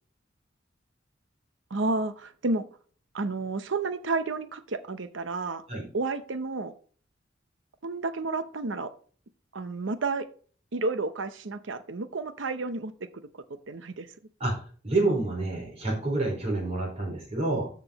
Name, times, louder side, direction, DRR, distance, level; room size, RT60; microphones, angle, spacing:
voice 1, 1.7-2.7 3.1-5.6 5.9-6.7 7.8-8.9 9.5-10.3 10.7-12.9 13.7-14.1, right 3 dB, 75° right, 11 dB, 0.7 m, -31 dB
voice 2, 14.8-17.7, right 2 dB, 35° right, -2 dB, 4.5 m, -28 dB
13.5 x 6.0 x 3.0 m, 0.42 s
head